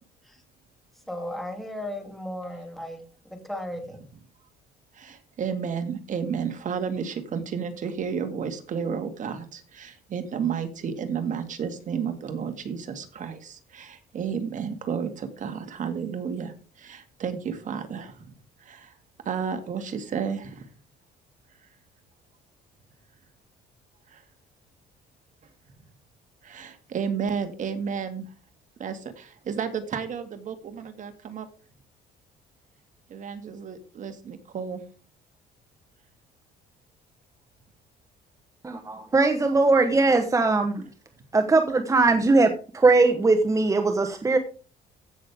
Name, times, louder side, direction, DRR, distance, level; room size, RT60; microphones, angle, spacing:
voice 1, 1.1-3.0 3.3-4.0, left 1 dB, ahead, 3 dB, 2.8 m, -35 dB
voice 2, 4.9-18.3 18.6-18.9 19.3-20.7 24.1-24.2 26.4-28.3 28.8-31.5 33.1-34.8, right 6 dB, 50° right, 8 dB, 2.1 m, -32 dB
voice 3, 38.6-40.8 41.3-44.4, right 3 dB, 20° right, 7 dB, 1.1 m, -20 dB
15.5 x 6.5 x 3.6 m, 0.37 s
cardioid pair, 110°, 17 cm